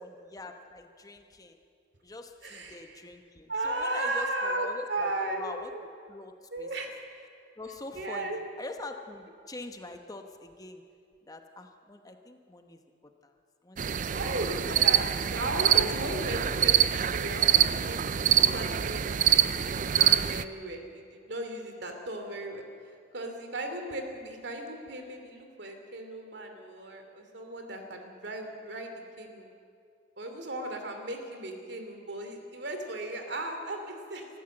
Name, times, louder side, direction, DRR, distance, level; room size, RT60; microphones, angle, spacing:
voice 1, 0.0-1.6 2.0-5.7 6.1-6.7 7.6-10.8 11.3-12.8 13.2-13.3 13.6-14.5 15.4-15.5, left 2 dB, 20° left, 5 dB, 1.1 m, -44 dB
voice 2, 2.4-3.0 3.5-5.5 6.5-6.9 7.9-8.4 14.1-22.7 23.1-29.5 30.2-34.3, right 1 dB, 65° right, 5 dB, 2.7 m, -36 dB
sound 1, 13.8-20.4, right 10 dB, 45° right, 0.5 m, -25 dB
24.5 x 14.0 x 7.8 m, 2.3 s
head